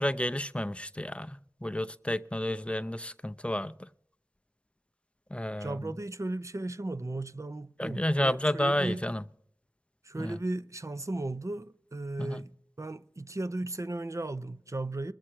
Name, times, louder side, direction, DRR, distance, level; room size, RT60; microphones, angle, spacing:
voice 1, 0.0-3.7 5.3-5.9 7.8-9.2 10.2-10.4 12.2-12.4, left 1 dB, 15° left, 0.5 m, -31 dB
voice 2, 5.6-9.0 10.0-12.5 12.8-15.1, right 2 dB, 45° right, 0.5 m, -36 dB
22.0 x 7.4 x 4.6 m
wide cardioid pair, 45°, 7 cm